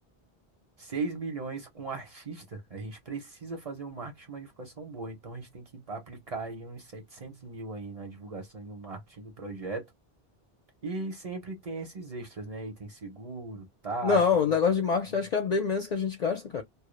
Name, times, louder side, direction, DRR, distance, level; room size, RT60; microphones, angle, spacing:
voice 1, 0.8-9.9 10.8-14.2 14.5-14.6 15.1-15.3, right 3 dB, 40° right, 0.7 m, -38 dB
voice 2, 14.0-16.6, left 5 dB, 55° left, 0.5 m, -25 dB
2.1 x 2.1 x 3.0 m
omnidirectional pair, 1.0 m